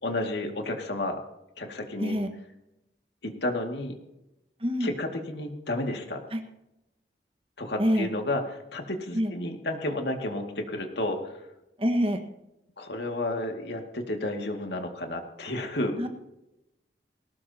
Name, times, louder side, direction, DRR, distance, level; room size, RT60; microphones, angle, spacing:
voice 1, 0.0-1.2 1.6-2.2 3.2-4.0 4.8-6.2 7.6-11.4 12.8-16.0, left 1 dB, 80° left, 3 dB, 2.3 m, -31 dB
voice 2, 4.6-4.9 6.3-6.4 7.8-8.1 9.1-9.3 11.8-12.2 16.0-16.1, equal, 30° right, 5 dB, 1.6 m, -25 dB
20.5 x 18.5 x 2.9 m, 0.90 s
head